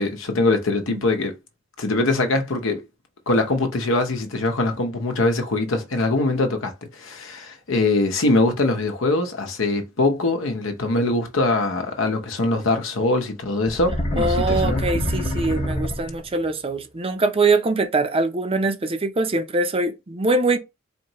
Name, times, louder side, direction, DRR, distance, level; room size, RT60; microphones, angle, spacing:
voice 1, 0.0-1.3 1.8-2.9 3.3-14.8, left 2 dB, 70° left, 0.8 m, -22 dB
sound 1, 13.7-16.5, equal, 35° left, 0.8 m, -25 dB
voice 2, 14.2-20.6, right 3 dB, 30° right, 0.6 m, -23 dB
4.3 x 2.8 x 3.0 m
head